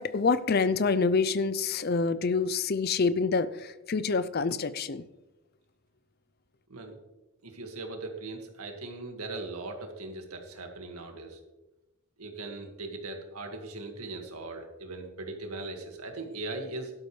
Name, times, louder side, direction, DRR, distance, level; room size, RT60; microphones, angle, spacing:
voice 1, 0.0-5.0, left 4 dB, 45° left, 15 dB, 0.5 m, -27 dB
voice 2, 7.4-11.4 12.2-16.9, right 2 dB, 90° right, 4 dB, 1.9 m, -39 dB
12.0 x 12.0 x 3.3 m, 1.1 s
head